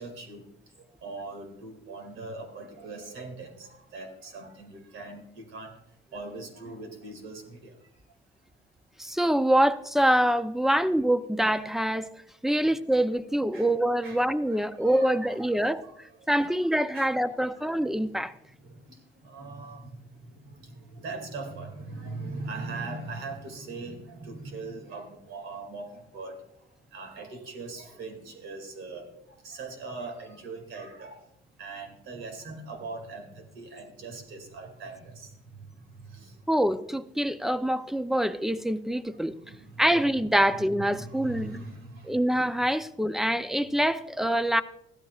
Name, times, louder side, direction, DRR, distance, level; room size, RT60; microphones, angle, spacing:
voice 1, 0.0-8.2 9.0-9.2 10.7-10.8 12.5-12.7 13.5-13.7 14.0-36.5 39.3-40.2 40.7-42.2, right 3 dB, 85° right, 2.4 m, -42 dB
voice 2, 9.0-12.1 12.4-18.3 36.5-39.4 39.8-41.6 42.1-44.6, right 1 dB, ahead, 0.5 m, -25 dB
15.0 x 12.5 x 2.4 m
cardioid pair, 90°, 20 cm